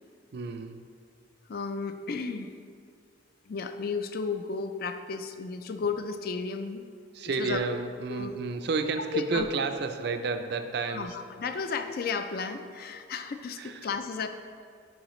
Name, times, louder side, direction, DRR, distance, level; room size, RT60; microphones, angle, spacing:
voice 1, 0.3-0.9 7.1-11.2 13.6-13.9, right 4 dB, 55° right, 7 dB, 0.4 m, -31 dB
voice 2, 1.5-2.5 3.5-6.9 7.4-7.8 8.1-8.4 9.1-9.5 10.9-14.3, left 5 dB, 50° left, 7 dB, 0.4 m, -33 dB
10.5 x 4.8 x 3.1 m, 2.3 s
head